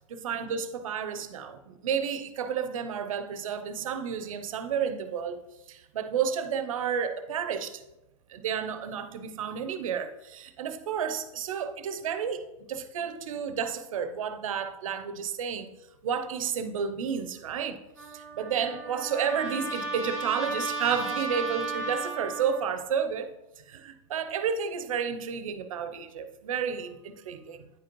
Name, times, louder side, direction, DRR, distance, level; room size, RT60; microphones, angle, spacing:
voice 1, 0.1-5.4 5.7-7.8 8.3-15.7 16.0-17.8 18.1-23.3 23.6-27.7, right 7 dB, 80° right, 0.7 m, -31 dB
Trumpet, 18.0-22.8, right 3 dB, 20° left, 2.1 m, -35 dB
9.3 x 5.1 x 3.0 m
hypercardioid pair, 150°, 17 cm